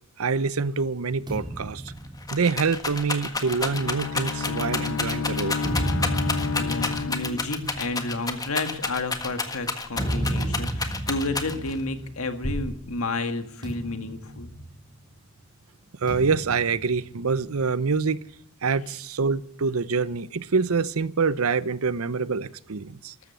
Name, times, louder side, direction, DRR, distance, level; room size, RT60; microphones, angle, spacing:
voice 1, 0.2-1.8 2.3-5.6 16.0-18.2 18.6-23.1, right 4 dB, 85° right, 0.7 m, -26 dB
sound 1, 1.3-4.9 5.4-12.8 13.1-13.3 13.6-15.2 16.1-17.8, right 1 dB, 20° right, 4.0 m, -33 dB
Rattle, 1.5-1.6 1.9-11.8 12.4-13.1, left 3 dB, 20° left, 1.5 m, -30 dB
Bowed string instrument, 3.2-8.0, left 5 dB, 70° left, 0.6 m, -31 dB
voice 2, 6.6-14.5, left 2 dB, 85° left, 1.9 m, -31 dB
14.0 x 13.5 x 6.8 m
head